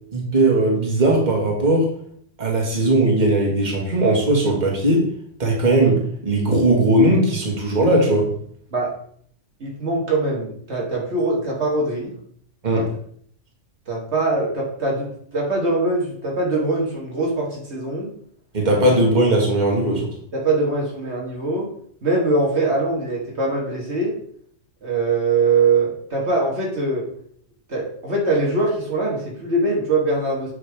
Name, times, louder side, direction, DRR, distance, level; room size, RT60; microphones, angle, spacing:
voice 1, 0.1-1.9 2.4-5.0 5.4-8.3 12.6-12.9 18.5-20.1, right 1 dB, 35° right, -2 dB, 1.9 m, -18 dB
voice 2, 9.6-12.1 12.8-12.9 13.9-18.1 20.3-21.7 22.0-24.1 24.8-27.0 27.7-30.5, right 3 dB, 60° right, -2 dB, 1.9 m, -22 dB
8.6 x 5.8 x 3.5 m, 0.62 s
omnidirectional pair, 1.3 m